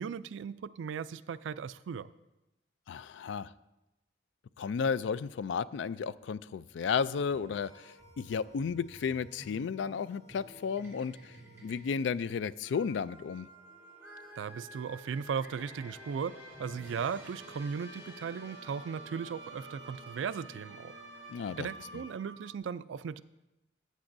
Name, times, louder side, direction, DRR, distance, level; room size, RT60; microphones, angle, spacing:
voice 1, 0.0-2.1 14.4-20.9 21.6-23.2, right 6 dB, 85° right, 16 dB, 0.3 m, -37 dB
voice 2, 2.9-3.5 4.6-11.3 11.6-13.5 21.3-21.7, left 6 dB, 80° left, 17 dB, 0.3 m, -33 dB
sound 1, 7.1-22.6, right 1 dB, 15° right, 3.1 m, -50 dB
14.5 x 8.2 x 2.6 m, 0.95 s
head